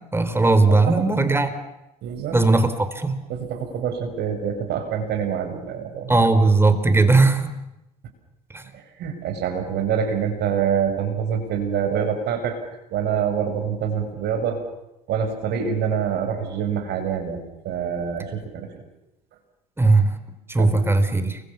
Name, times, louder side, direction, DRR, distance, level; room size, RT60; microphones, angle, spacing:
voice 1, 0.1-1.5 2.3-2.7 2.9-3.2 6.1-7.5 8.5-8.6 19.8-20.1 20.5-21.4, right 3 dB, 10° right, 10 dB, 4.2 m, -18 dB
voice 2, 0.7-1.0 2.0-2.4 3.3-6.3 8.7-12.6 12.9-14.6 15.1-18.7 20.6-20.8, right 7 dB, 55° right, 5 dB, 7.0 m, -26 dB
29.0 x 24.5 x 7.2 m, 0.90 s
hypercardioid pair, 65°, 20 cm